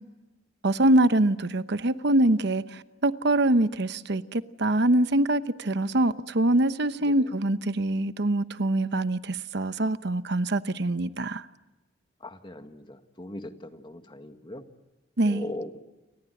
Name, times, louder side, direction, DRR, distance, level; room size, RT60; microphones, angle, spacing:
voice 1, 0.6-11.5 15.2-15.5, right 1 dB, 65° right, 12 dB, 1.0 m, -24 dB
voice 2, 12.2-14.6 15.3-15.8, left 1 dB, 25° left, 7 dB, 1.9 m, -39 dB
29.0 x 25.0 x 7.9 m, 1.1 s
head